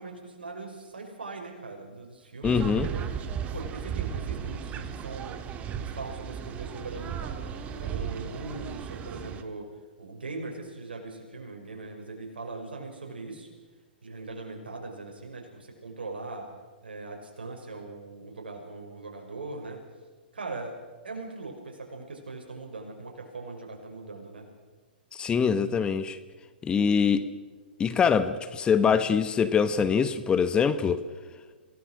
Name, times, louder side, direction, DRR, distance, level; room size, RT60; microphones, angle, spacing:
voice 1, 0.0-3.1 3.5-5.4 5.7-9.7 10.0-13.5 14.0-16.5 16.8-19.8 20.3-20.8 21.0-24.5, right 3 dB, 75° right, 6.0 m, -40 dB
voice 2, 2.4-2.9 25.1-26.2 26.6-27.3 27.8-31.0, left 6 dB, 15° left, 1.1 m, -24 dB
sound 1, 2.4-9.4, right 8 dB, 25° right, 1.6 m, -35 dB
27.0 x 18.0 x 6.4 m
figure-of-eight pair, 115°, 5 cm